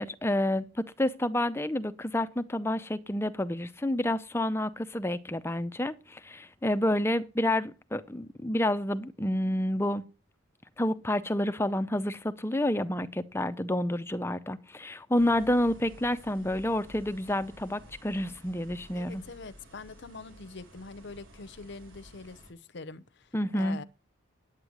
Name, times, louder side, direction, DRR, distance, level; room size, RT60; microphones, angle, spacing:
voice 1, 0.0-10.1 10.8-19.2 23.3-23.8, left 1 dB, 10° left, 0.5 m, -29 dB
sound 1, 15.1-22.5, equal, 70° right, 3.8 m, -52 dB
voice 2, 18.9-23.8, left 3 dB, 55° left, 0.7 m, -44 dB
9.7 x 8.9 x 6.2 m
head